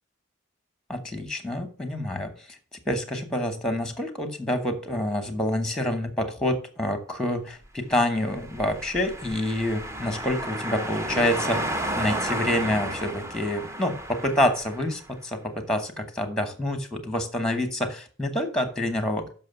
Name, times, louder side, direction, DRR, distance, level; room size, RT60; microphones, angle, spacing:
voice 1, 0.9-2.3 2.9-11.7 12.0-19.3, left 1 dB, 5° left, 7 dB, 1.1 m, -27 dB
sound 1, 8.3-15.0, right 1 dB, 15° right, 0.7 m, -32 dB
6.5 x 5.8 x 6.8 m, 0.40 s
head